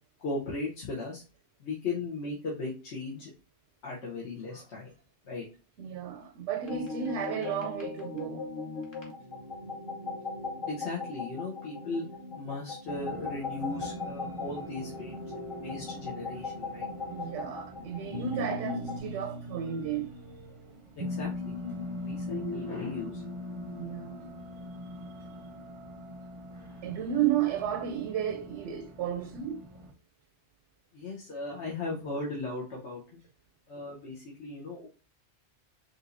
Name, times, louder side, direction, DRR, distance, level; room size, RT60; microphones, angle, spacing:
voice 1, 0.2-1.2 1.6-3.3 3.8-4.9 5.2-5.4 10.7-12.0 12.4-16.9 21.0-21.6 22.0-23.2 30.9-33.0 33.7-34.9, left 3 dB, 80° left, 1.3 m, -37 dB
voice 2, 5.8-8.5 17.1-20.1 23.7-24.3 24.8-25.5 26.8-29.6, right 9 dB, 85° right, 0.9 m, -33 dB
sound 1, 6.7-19.0, left 3 dB, 50° left, 1.3 m, -39 dB
sound 2, 12.9-29.9, left 1 dB, 35° right, 0.5 m, -41 dB
5.1 x 3.2 x 2.5 m
omnidirectional pair, 1.1 m